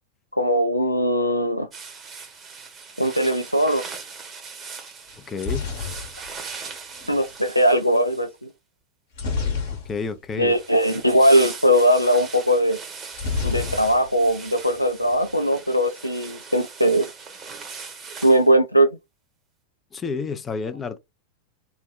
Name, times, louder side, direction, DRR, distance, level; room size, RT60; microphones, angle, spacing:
voice 1, 0.4-1.7 3.0-3.8 7.1-8.5 10.4-12.8 13.4-17.1 18.2-18.9, equal, 85° left, 0.4 m, -20 dB
sound 1, 1.7-8.5 10.5-18.5, right 5 dB, 25° right, 0.8 m, -40 dB
sound 2, 5.1-7.2 9.1-10.3 10.6-10.7 11.0-11.2 13.1-14.3 14.6-15.2, left 5 dB, 55° left, 0.9 m, -29 dB
voice 2, 5.2-5.7 9.7-10.5 19.9-21.0, left 4 dB, 20° left, 0.4 m, -30 dB
3.2 x 2.1 x 2.2 m
figure-of-eight pair, 90°, 0 cm